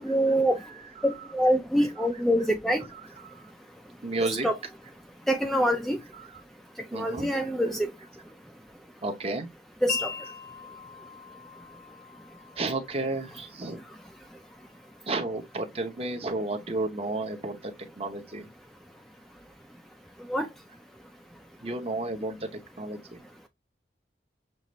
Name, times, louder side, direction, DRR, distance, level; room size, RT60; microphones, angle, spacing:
voice 1, 0.0-0.6 1.0-2.9 4.4-4.6 5.3-6.0 6.9-7.9 9.8-10.1 20.3-20.5, equal, ahead, 0.4 m, -25 dB
voice 2, 0.6-1.3 2.9-3.4 4.0-4.5 6.2-6.4 6.9-7.3 9.0-9.5 12.6-13.8 15.1-18.5 21.6-22.5 22.8-23.2, right 2 dB, 30° right, 0.9 m, -32 dB
Wind chime, 9.9-16.0, left 6 dB, 45° left, 0.6 m, -41 dB
6.5 x 2.5 x 3.1 m
head